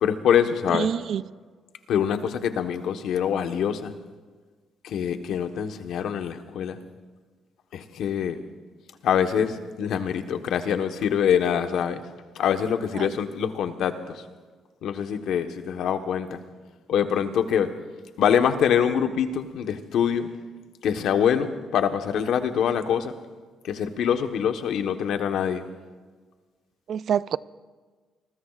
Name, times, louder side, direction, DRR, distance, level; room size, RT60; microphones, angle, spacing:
voice 1, 0.0-0.9 1.9-3.9 4.8-6.8 7.7-8.4 9.0-12.0 12.4-13.9 14.8-16.4 16.9-17.7 18.2-20.3 20.8-23.1 23.6-25.6, left 8 dB, 75° left, 1.2 m, -24 dB
voice 2, 0.7-1.2 13.0-13.1 26.9-27.4, right 8 dB, 65° right, 0.4 m, -26 dB
28.0 x 21.0 x 2.4 m
cardioid pair, 90°, 0 cm